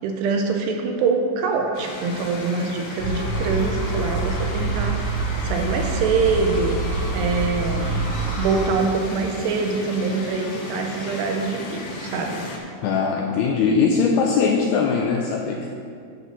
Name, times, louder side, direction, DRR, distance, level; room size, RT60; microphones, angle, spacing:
voice 1, 0.0-8.1 8.4-12.4, right 4 dB, 80° right, 3 dB, 2.7 m, -24 dB
sound 1, 1.7-12.6, left 2 dB, 70° left, 1.7 m, -35 dB
sound 2, 3.0-8.6, right 3 dB, 40° right, 1.1 m, -26 dB
voice 2, 12.8-15.7, left 5 dB, 90° left, 1 dB, 2.3 m, -21 dB
11.0 x 6.3 x 5.6 m, 2.3 s
omnidirectional pair, 5.2 m